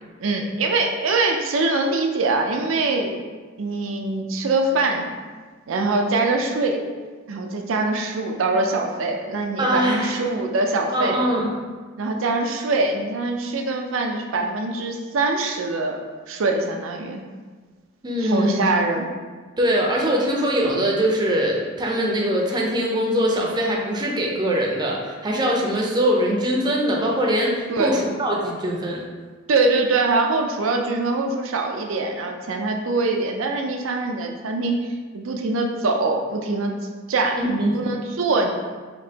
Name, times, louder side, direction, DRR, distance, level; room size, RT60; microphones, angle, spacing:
voice 1, 0.0-3.2 3.6-5.1 5.7-6.9 7.3-11.2 12.0-16.0 16.3-17.2 18.2-19.1 27.7-27.9 29.5-34.8 35.1-36.8 37.1-38.5, right 3 dB, 80° right, 3 dB, 0.5 m, -23 dB
voice 2, 9.6-10.1 10.9-11.5 18.0-18.6 19.6-29.0 37.4-37.8, equal, 20° right, -2 dB, 0.5 m, -22 dB
5.1 x 2.9 x 2.8 m, 1.4 s
head